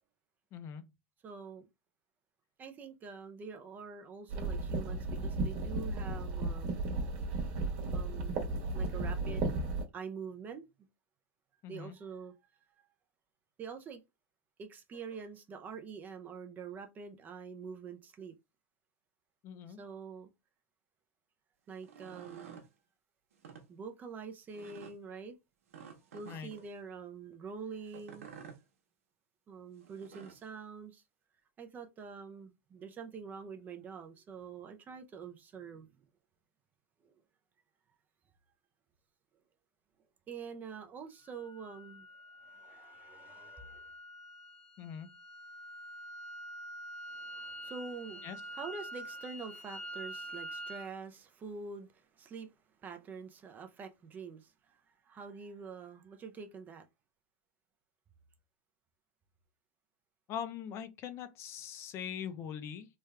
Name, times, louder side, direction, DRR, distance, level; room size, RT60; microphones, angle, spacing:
voice 1, 0.5-0.9 11.6-11.9 19.4-19.8 26.3-26.5 44.8-45.1 48.2-48.4 60.3-62.9, left 8 dB, 35° left, 0.5 m, -42 dB
voice 2, 1.2-1.7 2.6-6.8 7.9-8.4 8.7-9.5 9.9-10.7 11.7-12.3 13.6-14.0 14.6-18.3 19.7-20.3 21.7-22.6 23.7-25.4 26.1-28.3 29.5-31.0 31.6-36.1 37.0-37.1 40.3-42.1 42.4-43.9 47.1-52.5 52.8-54.8 55.0-56.9, right 5 dB, 25° right, 0.5 m, -46 dB
sound 1, 4.3-9.8, right 2 dB, 50° right, 1.2 m, -34 dB
sound 2, 21.7-22.7 23.3-23.6 24.5-24.9 25.7-26.7 27.9-28.6 29.8-30.5, right 7 dB, 90° right, 0.9 m, -51 dB
sound 3, 41.2-50.9, right 1 dB, 5° left, 0.9 m, -46 dB
3.3 x 2.3 x 3.2 m
supercardioid pair, 135°, 7 cm